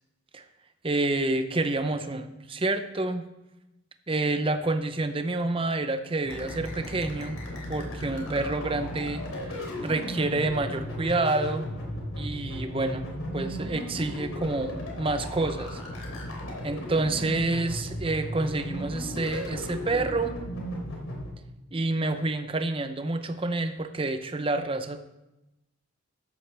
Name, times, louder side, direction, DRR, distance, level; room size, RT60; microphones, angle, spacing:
voice 1, 0.8-3.2 4.1-7.4 7.7-9.5 9.8-11.7 12.2-13.1 13.3-15.8 16.6-20.3 21.7-25.0, right 2 dB, 25° right, 9 dB, 0.7 m, -28 dB
sound 1, 6.2-21.3, equal, 85° left, 3.2 m, -35 dB
13.5 x 11.0 x 3.4 m, 0.95 s
head